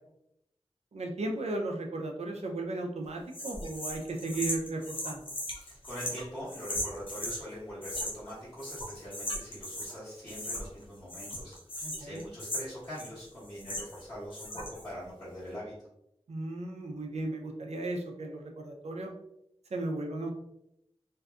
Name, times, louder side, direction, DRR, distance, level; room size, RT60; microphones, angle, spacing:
voice 1, 0.9-5.2 11.8-12.2 16.3-19.1 19.7-20.3, right 2 dB, 90° right, 2 dB, 0.4 m, -35 dB
sound 1, 3.3-7.4 7.8-8.3 8.6-10.0 10.3-10.8 11.1-14.0 14.3-14.9, left 1 dB, 55° left, 0.7 m, -38 dB
voice 2, 5.5-15.7, equal, 25° left, -13 dB, 1.2 m, -43 dB
2.6 x 2.3 x 2.3 m, 0.79 s
wide cardioid pair, 70°, 11 cm